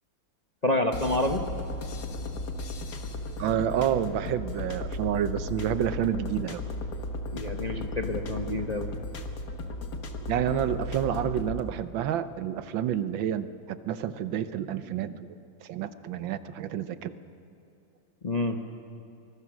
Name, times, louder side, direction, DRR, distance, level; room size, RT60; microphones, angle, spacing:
voice 1, 0.6-1.4 7.3-8.9 18.2-18.6, left 1 dB, 35° left, 4 dB, 0.7 m, -28 dB
sound 1, 0.9-11.6, left 1 dB, 60° left, 1.9 m, -35 dB
voice 2, 3.4-6.6 10.3-15.3 15.6-17.1, right 10 dB, 80° right, 12 dB, 1.6 m, -29 dB
25.0 x 20.0 x 6.1 m, 2.9 s
omnidirectional pair, 2.1 m